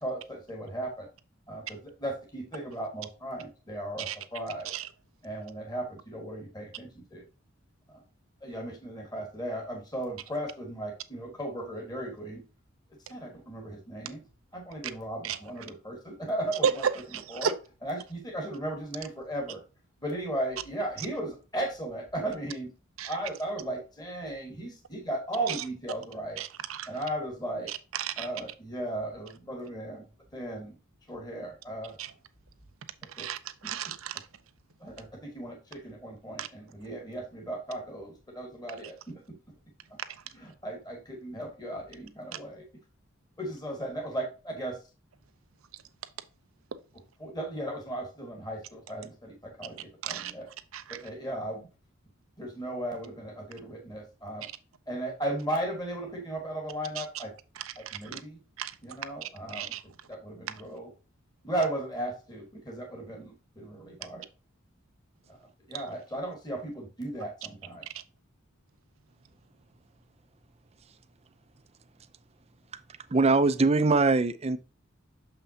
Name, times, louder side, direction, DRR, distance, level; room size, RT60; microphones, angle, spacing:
voice 1, 0.0-1.1 1.5-4.7 5.2-7.3 7.9-8.0 8.4-12.4 13.1-14.2 14.5-16.8 17.3-17.5 17.8-19.6 20.0-22.7 23.0-26.4 26.9-27.7 28.2-30.0 30.3-30.7 31.1-32.0 33.2-33.3 33.6-33.7 34.8-39.2 40.3-42.6 43.4-44.8 47.2-50.5 50.9-51.6 52.4-54.4 54.9-57.3 57.8-58.4 58.8-59.7 60.1-60.9 61.4-64.2 65.7-67.8, right 1 dB, 20° left, 1.6 m, -36 dB
voice 2, 16.6-17.5 23.0-23.1 25.5-25.6 26.4-26.9 27.7-28.3 32.0-32.1 33.1-34.3 36.4-36.5 46.7-46.8 50.0-50.3 50.7-51.0 57.0-57.2 57.6-58.2 58.6-58.7 59.2-59.8 60.5-60.6 65.7-65.8, right 7 dB, 90° right, 0.7 m, -33 dB
voice 3, 73.1-74.6, right 3 dB, 30° right, 0.5 m, -22 dB
6.7 x 5.6 x 2.8 m
head